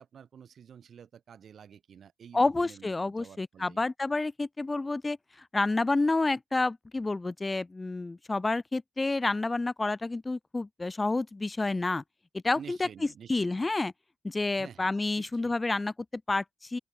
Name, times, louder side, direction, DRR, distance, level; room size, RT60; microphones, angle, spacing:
voice 1, 0.0-3.8 12.5-13.7 14.6-14.9 15.2-15.5, right 8 dB, 55° right, 2.1 m, -50 dB
voice 2, 2.3-12.0 12.4-12.9 13.3-13.9 14.2-16.8, left 2 dB, 20° left, 0.6 m, -29 dB
open air
cardioid pair, 90°, 0 cm